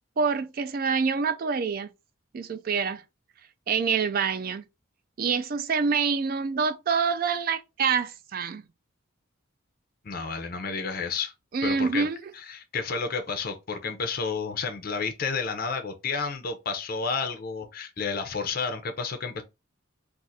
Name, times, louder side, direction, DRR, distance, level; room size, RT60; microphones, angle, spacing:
voice 1, 0.2-1.9 2.3-3.0 3.7-4.6 5.2-8.6 11.5-12.2, right 5 dB, 45° right, 0.3 m, -26 dB
voice 2, 10.0-11.3 11.6-12.1 12.3-19.4, left 5 dB, 45° left, 0.5 m, -31 dB
2.5 x 2.5 x 4.0 m
head